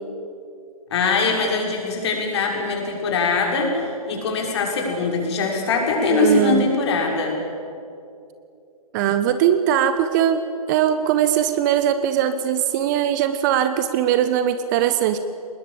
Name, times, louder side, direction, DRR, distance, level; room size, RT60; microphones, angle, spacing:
voice 1, 0.9-3.7 4.1-7.4, left 4 dB, 45° left, 0 dB, 6.2 m, -22 dB
voice 2, 6.1-6.7 8.9-15.2, right 10 dB, 30° right, 11 dB, 1.0 m, -20 dB
24.0 x 20.5 x 8.6 m, 2.6 s
figure-of-eight pair, 125°, 19 cm